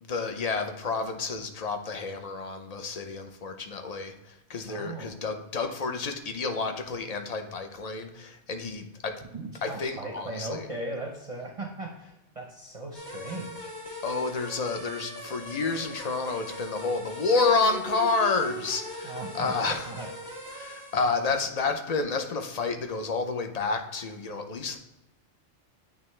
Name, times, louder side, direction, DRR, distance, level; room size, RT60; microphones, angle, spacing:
voice 1, 0.0-9.2 9.6-10.6 14.0-19.9 20.5-24.8, left 4 dB, 40° left, 6 dB, 0.6 m, -30 dB
voice 2, 4.6-5.2 9.3-14.0 19.0-20.1, right 2 dB, 35° right, -1 dB, 0.7 m, -38 dB
sound 1, 12.9-21.2, equal, 20° left, 1.2 m, -40 dB
9.1 x 3.4 x 3.2 m, 0.95 s
omnidirectional pair, 1.2 m